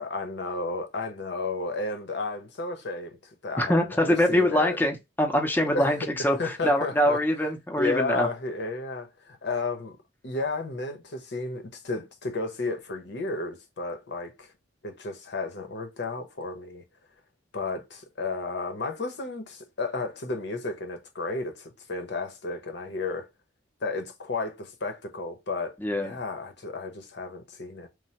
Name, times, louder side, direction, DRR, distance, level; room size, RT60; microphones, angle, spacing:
voice 1, 0.0-3.2 3.4-4.8 5.7-6.0 6.4-7.2 7.8-10.0 10.2-14.5 14.8-16.8 17.5-23.3 23.8-27.9, left 3 dB, 65° left, 0.8 m, -33 dB
voice 2, 3.6-6.0 6.2-8.3 25.8-26.1, left 1 dB, 10° left, 0.5 m, -24 dB
3.2 x 2.1 x 2.8 m
head